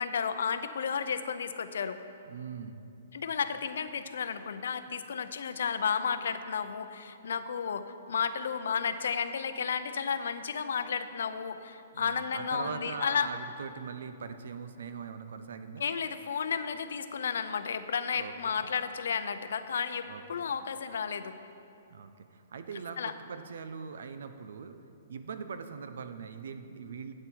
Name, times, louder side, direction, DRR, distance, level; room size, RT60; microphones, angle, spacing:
voice 1, 0.0-2.0 3.1-13.3 15.8-21.4 23.0-23.1, left 6 dB, 75° left, 10 dB, 0.6 m, -32 dB
voice 2, 2.3-2.8 11.9-15.8 18.2-18.7 20.0-20.5 21.9-24.8 25.1-27.1, right 6 dB, 65° right, 10 dB, 0.7 m, -41 dB
12.0 x 8.9 x 4.6 m, 2.7 s
hypercardioid pair, 175°, 0 cm